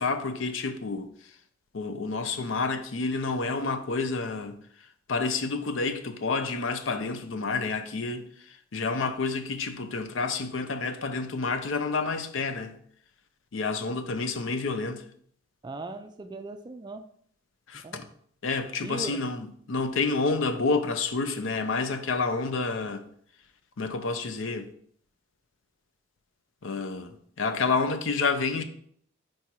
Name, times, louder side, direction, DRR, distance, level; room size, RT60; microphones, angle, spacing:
voice 1, 0.0-1.3 1.7-12.8 13.5-15.0 17.7-18.1 18.4-23.0 23.8-24.7 26.6-28.6, left 4 dB, 65° left, 0.6 m, -29 dB
voice 2, 15.6-17.1 17.8-18.0 18.8-19.2, right 2 dB, 20° right, 0.3 m, -38 dB
4.7 x 4.3 x 4.6 m
head